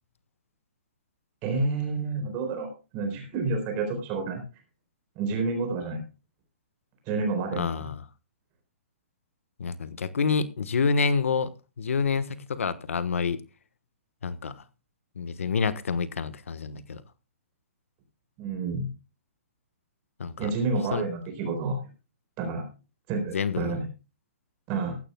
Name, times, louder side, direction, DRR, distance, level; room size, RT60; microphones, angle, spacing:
voice 1, 1.4-4.4 5.2-6.0 7.1-7.9 18.4-18.9 20.4-21.8 22.4-22.7 23.1-23.9 24.7-25.0, right 3 dB, 25° right, 4.2 m, -29 dB
voice 2, 7.6-8.0 9.6-11.5 11.8-13.4 14.2-14.6 15.2-17.0 20.2-20.5 20.9-21.0 23.3-23.7, left 5 dB, 90° left, 1.3 m, -28 dB
15.5 x 15.5 x 2.3 m
hypercardioid pair, 165°, 7 cm